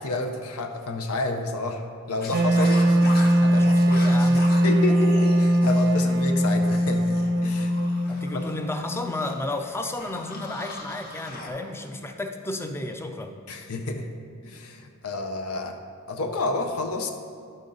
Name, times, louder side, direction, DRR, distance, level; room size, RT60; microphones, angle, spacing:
voice 1, 0.0-2.8 3.4-3.7 4.6-7.8 8.1-8.4 13.5-14.1 14.4-15.8 16.1-17.1, left 2 dB, 80° left, 5 dB, 0.7 m, -30 dB
sound 1, 2.2-11.5, left 2 dB, 45° left, 1.0 m, -40 dB
Wind instrument woodwind instrument, 2.3-9.3, equal, 55° right, 0.5 m, -21 dB
voice 2, 2.6-4.5 8.1-13.4, left 2 dB, 10° left, 5 dB, 0.4 m, -33 dB
11.5 x 5.3 x 3.8 m, 2.2 s
head